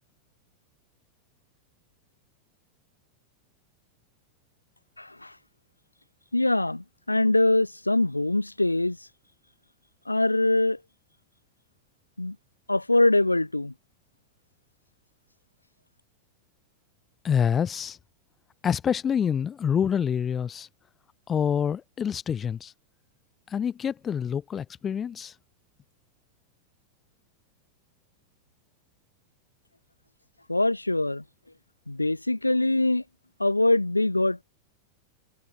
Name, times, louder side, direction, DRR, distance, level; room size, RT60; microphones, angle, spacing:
voice 1, 5.0-5.3 6.3-9.0 10.1-10.8 12.2-12.4 12.7-13.7 30.5-31.2 31.9-33.0 33.4-34.4, left 2 dB, 85° left, 0.6 m, -23 dB
voice 2, 17.2-18.0 18.6-20.7 21.3-22.7 23.5-25.3, left 8 dB, 25° left, 0.5 m, -26 dB
figure-of-eight pair, 90°, 0 cm